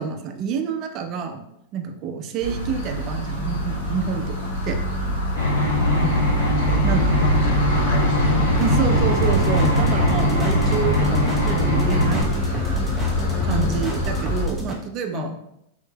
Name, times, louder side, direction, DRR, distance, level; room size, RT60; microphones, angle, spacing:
voice 1, 0.0-4.8 6.8-7.0 8.6-12.8 13.4-15.3, right 6 dB, 45° right, 6 dB, 0.5 m, -28 dB
sound 1, 2.4-14.4, equal, 70° left, 1.2 m, -24 dB
sound 2, 5.4-12.2, left 1 dB, 90° left, 1.3 m, -22 dB
voice 2, 5.9-9.1 9.6-9.8 13.4-13.8 15.1-15.3, left 6 dB, 55° left, 4 dB, 0.6 m, -31 dB
sound 3, 8.5-14.7, equal, 5° left, 0.8 m, -28 dB
4.2 x 3.0 x 2.2 m, 0.79 s
hypercardioid pair, 110°, 0 cm